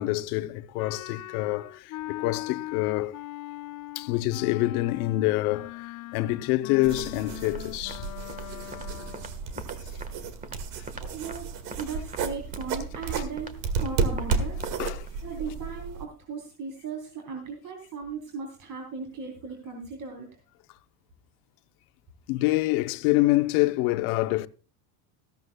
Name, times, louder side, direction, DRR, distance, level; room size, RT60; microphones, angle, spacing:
voice 1, 0.0-3.2 3.9-8.1 8.5-8.6 9.6-9.7 13.1-13.2 14.8-15.1 22.3-24.5, left 18 dB, 75° left, 0.8 m, -26 dB
Wind instrument woodwind instrument, 0.8-9.4, left 17 dB, 40° left, 0.5 m, -40 dB
sound 1, 6.8-16.1, right 5 dB, 65° right, 1.9 m, -33 dB
sound 2, 7.4-7.6 7.9-8.0 8.3-8.4 8.7-8.9 9.1-9.3 9.6-10.1 10.4-10.6 10.9-11.4 11.7-11.9 12.1-12.2 12.5-12.7 12.9-13.1 13.4-13.5 13.8-13.9 14.2-14.4 14.6-14.8 15.1-15.2, right 3 dB, 20° right, 1.4 m, -41 dB
voice 2, 11.0-14.6 15.2-20.3, right 5 dB, 45° right, 3.6 m, -37 dB
15.0 x 13.5 x 2.3 m
supercardioid pair, 115°, 44 cm